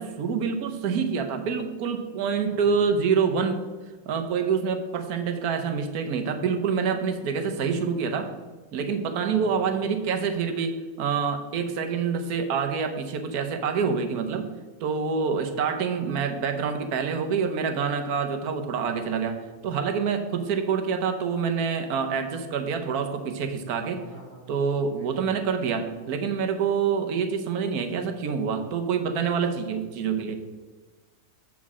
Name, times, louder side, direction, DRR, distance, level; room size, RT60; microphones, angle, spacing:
voice 1, 0.0-3.6 4.1-8.3 8.7-14.5 14.8-19.4 19.6-24.0 24.5-30.6, right 6 dB, 70° right, 6 dB, 1.3 m, -26 dB
voice 2, 9.2-9.7 23.9-24.5 24.8-25.2, equal, 55° left, -12 dB, 3.2 m, -46 dB
7.8 x 7.3 x 3.7 m, 1.3 s
omnidirectional pair, 1.7 m